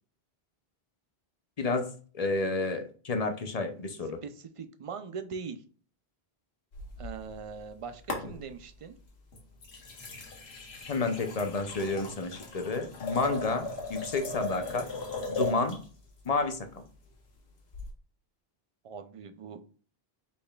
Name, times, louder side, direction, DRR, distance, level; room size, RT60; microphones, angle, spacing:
voice 1, 1.6-4.2 10.9-14.9 15.3-15.8 16.2-16.8, left 3 dB, 40° left, 6 dB, 0.7 m, -30 dB
voice 2, 4.2-5.6 7.0-9.0 18.8-19.6, right 5 dB, 45° right, 9 dB, 0.4 m, -41 dB
sound 1, 6.7-7.7 8.1-8.8 9.3-15.9 17.7-17.9, left 3 dB, 80° left, 1.3 m, -38 dB
5.4 x 4.2 x 2.3 m, 0.40 s
omnidirectional pair, 1.0 m